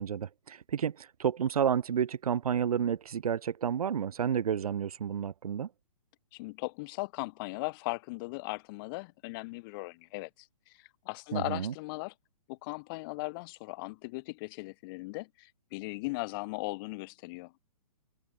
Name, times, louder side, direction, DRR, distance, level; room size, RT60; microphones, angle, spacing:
voice 1, 0.0-5.7 11.3-11.7, right 8 dB, 70° right, 1.4 m, -30 dB
voice 2, 6.3-12.1 12.5-17.5, left 25 dB, 35° left, 3.5 m, -38 dB
hypercardioid pair, 135°, 20 cm